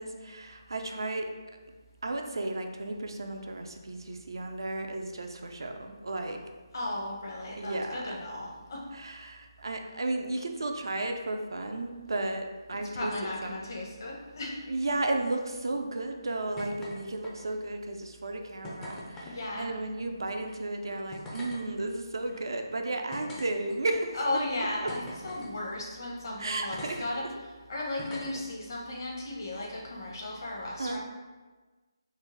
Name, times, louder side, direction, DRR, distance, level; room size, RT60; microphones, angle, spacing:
voice 1, 0.0-1.3 2.0-6.4 7.6-8.2 8.9-13.1 13.4-13.6 14.7-24.2 24.8-24.9 26.4-27.3 30.8-31.0, right 2 dB, 65° right, 4 dB, 0.4 m, -34 dB
voice 2, 6.7-8.8 12.7-14.5 19.2-19.7 24.1-27.3 27.7-31.0, left 2 dB, 50° left, -3 dB, 1.0 m, -35 dB
sound 1, 16.6-17.0 17.2-17.7 18.6-19.3 20.4-20.5 21.1-21.6 22.3-22.4 23.1-24.0 24.9-25.5 26.7-27.0 28.0-28.4 29.5-29.7, left 1 dB, 10° left, 0.5 m, -43 dB
3.9 x 2.1 x 3.9 m, 1.3 s
figure-of-eight pair, 155°, 2 cm